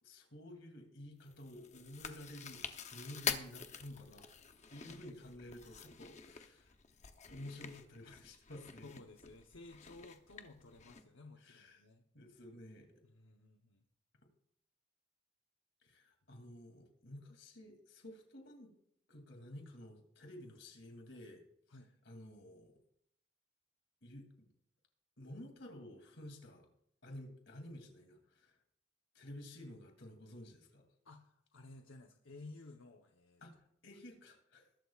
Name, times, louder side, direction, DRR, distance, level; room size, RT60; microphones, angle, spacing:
voice 1, 0.0-2.6 2.9-4.3 4.7-6.7 7.3-8.9 11.4-11.8 12.1-12.9 15.8-18.7 19.1-21.4 22.0-22.7 24.0-24.5 25.2-26.7 27.0-28.6 29.1-30.8 33.4-33.5 33.8-34.7, left 1 dB, 65° left, 3 dB, 2.7 m, -52 dB
Chewing mastication, 1.2-11.0, left 7 dB, 35° left, 0.8 m, -46 dB
voice 2, 8.8-12.0 13.0-13.8 21.7-21.9 31.0-33.4, left 2 dB, 85° left, 3 dB, 1.0 m, -55 dB
21.5 x 11.5 x 2.4 m, 0.71 s
head